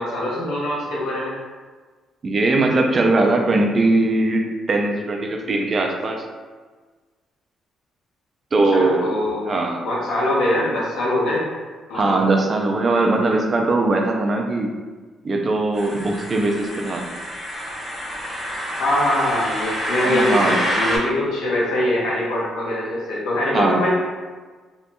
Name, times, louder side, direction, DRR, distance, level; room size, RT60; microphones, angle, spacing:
voice 1, 0.0-1.3 8.7-9.5 9.8-11.5 11.9-12.2 18.8-23.9, left 1 dB, 85° left, -5 dB, 0.8 m, -23 dB
voice 2, 2.2-6.2 8.5-9.1 9.5-9.8 11.9-14.7 15.2-17.1 20.0-20.6 23.5-23.9, right 2 dB, 40° right, 1 dB, 0.4 m, -20 dB
sound 1, 15.7-21.0, equal, 10° left, 1.2 m, -27 dB
2.8 x 2.5 x 2.2 m, 1.4 s
cardioid pair, 90°, 0 cm